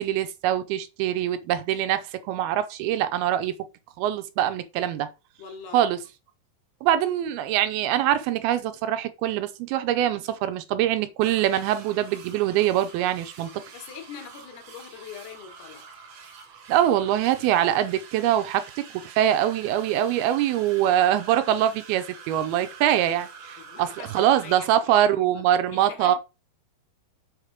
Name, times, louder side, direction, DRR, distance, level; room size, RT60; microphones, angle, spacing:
voice 1, 0.0-3.6 4.0-5.1 5.7-6.0 6.8-13.6 16.7-26.2, right 11 dB, 80° right, 2.4 m, -23 dB
voice 2, 5.4-5.8 13.7-15.9 23.6-25.4 25.7-26.2, left 7 dB, 75° left, 3.1 m, -43 dB
sound 1, 11.2-24.6, right 5 dB, 65° right, 1.6 m, -46 dB
6.5 x 4.8 x 5.0 m
omnidirectional pair, 4.8 m